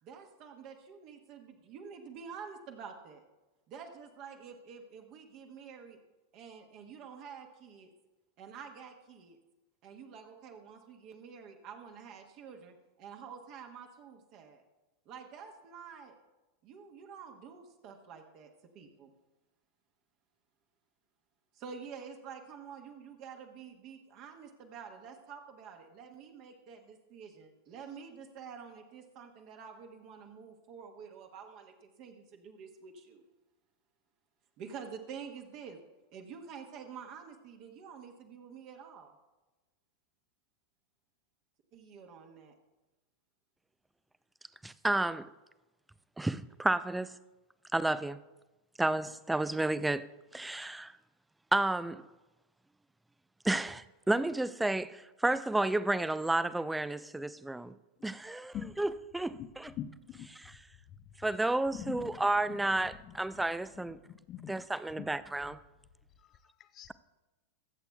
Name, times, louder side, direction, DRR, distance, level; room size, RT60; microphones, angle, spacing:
voice 1, 0.0-3.2 3.7-6.0 6.3-7.9 8.4-9.4 9.8-14.6 15.0-16.2 16.6-19.1 21.5-33.2 34.6-35.8 36.1-39.1 41.7-42.5, right 6 dB, 40° right, 1.2 m, -48 dB
voice 2, 44.6-45.3 46.2-47.1 47.7-48.2 48.8-50.9 51.5-52.1 53.4-57.7 58.0-59.7 61.2-64.0 64.5-65.6, right 2 dB, 5° right, 0.4 m, -31 dB
voice 3, 59.8-60.3 61.0-61.1 61.7-62.6 63.0-63.2 64.0-64.6 65.0-65.2 65.4-65.6 66.2-66.9, left 10 dB, 30° left, 0.6 m, -44 dB
22.0 x 8.1 x 2.3 m
figure-of-eight pair, 90°, 0 cm